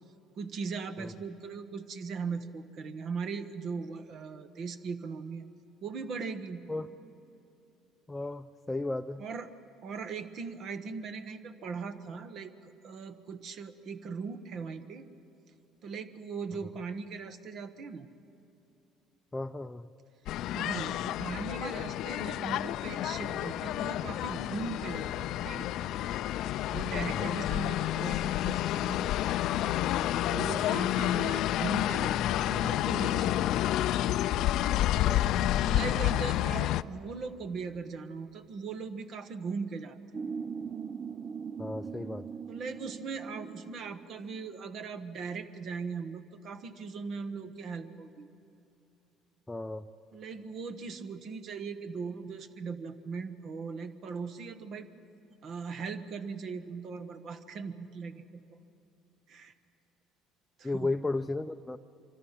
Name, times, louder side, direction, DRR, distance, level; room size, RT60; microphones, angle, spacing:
voice 1, 0.4-5.5 5.8-6.6 9.2-9.5 9.8-15.1 15.8-18.1 20.5-25.7 26.7-29.1 30.3-33.7 35.6-40.0 42.5-48.3 50.1-54.9 55.4-58.2 59.3-59.5 60.6-60.9, right 5 dB, 55° right, 9 dB, 1.2 m, -39 dB
voice 2, 8.1-9.2 19.3-19.9 27.1-27.4 30.3-30.6 35.0-35.5 41.6-42.3 49.5-49.9 60.6-61.8, left 2 dB, 15° left, 6 dB, 0.6 m, -35 dB
sound 1, 20.3-36.8, left 13 dB, 65° left, 0.5 m, -30 dB
sound 2, 40.1-44.2, right 6 dB, 35° right, 0.5 m, -40 dB
25.5 x 25.0 x 5.8 m, 2.8 s
cardioid pair, 100°, 0 cm